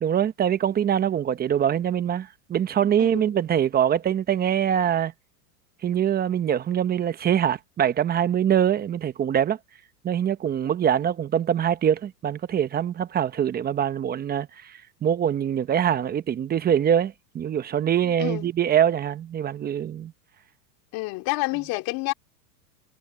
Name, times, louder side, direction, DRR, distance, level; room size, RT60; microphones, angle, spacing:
voice 1, 0.0-5.1 5.8-9.6 10.0-20.1, right 9 dB, 20° right, 1.0 m, -24 dB
voice 2, 18.2-18.5 20.9-22.1, left 22 dB, 45° left, 2.7 m, -28 dB
supercardioid pair, 130°, 49 cm